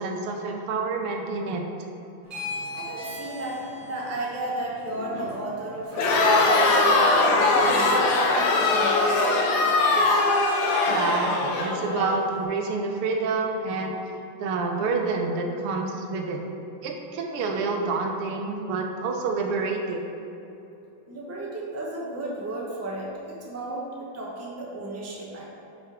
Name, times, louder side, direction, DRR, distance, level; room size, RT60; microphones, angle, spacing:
voice 1, 0.0-1.6 10.9-14.0 14.4-16.4 16.8-20.0, right 3 dB, 85° right, 2 dB, 1.7 m, -28 dB
sound 1, 2.2-8.8, left 1 dB, 30° right, 1.0 m, -39 dB
voice 2, 2.7-7.1 7.4-9.5 21.1-25.5, right 1 dB, 15° right, -4 dB, 0.5 m, -34 dB
Crowd, 5.9-12.1, left 2 dB, 60° left, 1.2 m, -21 dB
6.0 x 5.5 x 4.9 m, 2.9 s
omnidirectional pair, 2.4 m